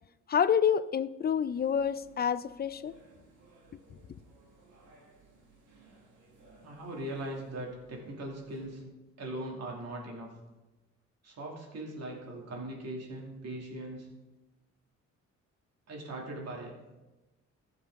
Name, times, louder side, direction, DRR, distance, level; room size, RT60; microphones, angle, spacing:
voice 1, 0.3-2.9, left 8 dB, 35° left, 0.4 m, -28 dB
sound 1, 1.5-8.9, right 2 dB, 90° right, 2.1 m, -60 dB
voice 2, 6.6-8.8 9.2-10.3 11.2-14.1 15.9-16.7, right 1 dB, 60° right, 2.6 m, -40 dB
15.0 x 6.8 x 3.6 m
cardioid pair, 90°, 30 cm